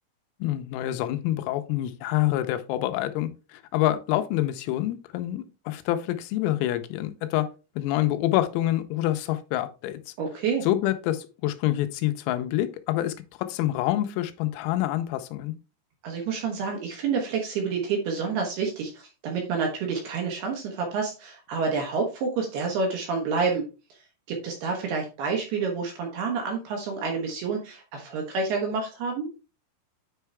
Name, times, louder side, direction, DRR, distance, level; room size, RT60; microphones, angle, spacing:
voice 1, 0.4-7.5 7.8-10.1 10.6-15.5, left 14 dB, 90° left, 9 dB, 3.4 m, -27 dB
voice 2, 10.2-10.6 16.0-23.6 23.9-24.0 24.3-29.3, right 5 dB, 70° right, 1 dB, 2.6 m, -28 dB
9.1 x 4.7 x 3.3 m, 0.31 s
omnidirectional pair, 5.9 m